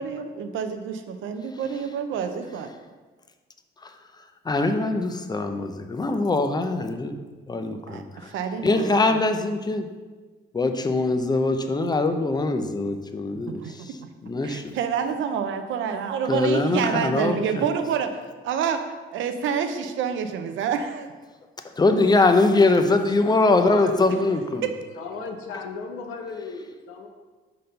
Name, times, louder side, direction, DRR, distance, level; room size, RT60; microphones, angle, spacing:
voice 1, 0.0-2.7 7.9-9.2 13.5-13.9 14.4-21.1, right 7 dB, 80° right, 7 dB, 0.6 m, -28 dB
voice 2, 4.4-7.2 7.5-8.3 8.6-9.9 10.5-13.9 14.2-14.7 16.3-17.6 21.6-24.7, left 3 dB, 20° left, 7 dB, 0.6 m, -22 dB
voice 3, 23.4-24.1 25.0-27.1, left 5 dB, 90° left, 4 dB, 0.8 m, -35 dB
5.1 x 4.0 x 5.6 m, 1.4 s
cardioid pair, 90°, 20 cm